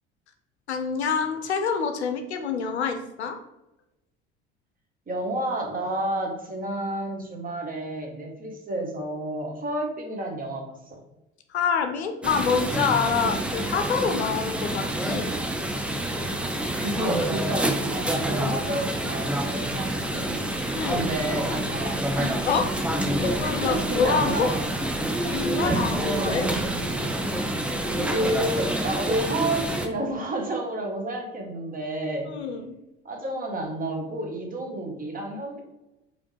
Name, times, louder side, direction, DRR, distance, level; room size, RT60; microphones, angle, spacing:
voice 1, 0.7-3.4 11.5-15.3 20.7-21.1 22.5-22.7 23.2-24.5 25.2-26.5 27.5-27.7 32.3-32.7, left 6 dB, 80° left, 6 dB, 0.5 m, -26 dB
voice 2, 5.1-11.0 13.2-13.4 16.8-20.4 20.9-22.5 23.6-24.6 25.6-26.7 28.1-32.3 33.0-35.6, right 1 dB, 25° right, 1 dB, 1.1 m, -30 dB
sound 1, 12.2-29.9, right 1 dB, 5° right, 0.4 m, -27 dB
4.9 x 2.7 x 3.2 m, 0.94 s
figure-of-eight pair, 60°, 33 cm